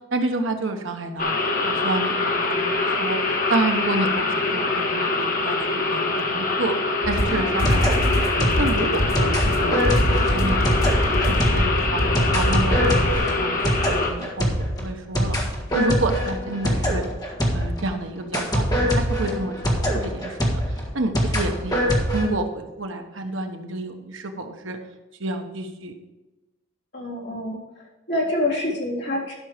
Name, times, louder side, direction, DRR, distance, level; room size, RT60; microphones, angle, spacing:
voice 1, 0.1-6.7 7.1-8.3 8.6-9.7 10.1-12.0 12.3-15.4 15.7-17.0 17.5-19.5 19.9-21.8 22.1-24.8 25.2-26.0, right 2 dB, 65° right, 5 dB, 1.1 m, -29 dB
sound 1, 1.2-14.1, left 3 dB, 40° left, 1.4 m, -24 dB
sound 2, 7.0-17.9 18.3-22.3, equal, 20° left, 1.8 m, -24 dB
sound 3, 7.1-13.2, equal, 85° left, 2.8 m, -24 dB
voice 2, 26.9-29.3, left 1 dB, 60° left, -5 dB, 3.6 m, -27 dB
11.5 x 6.1 x 5.0 m, 1.1 s
head